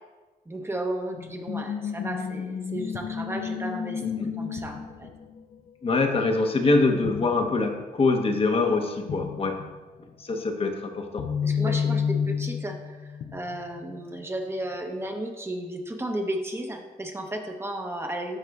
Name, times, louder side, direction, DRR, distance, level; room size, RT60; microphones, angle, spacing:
voice 1, 0.5-5.1 11.4-18.4, right 1 dB, 15° right, 3 dB, 0.8 m, -34 dB
sound 1, 1.2-6.8 7.0-7.8 8.1-8.2 9.1-9.8 10.6-14.0 14.7-15.2, left 7 dB, 70° left, 0.5 m, -31 dB
voice 2, 4.0-4.3 5.8-9.6 10.2-11.2, left 3 dB, 40° left, 4 dB, 0.8 m, -24 dB
12.5 x 5.7 x 2.3 m, 1.3 s
cardioid pair, 125°, 15 cm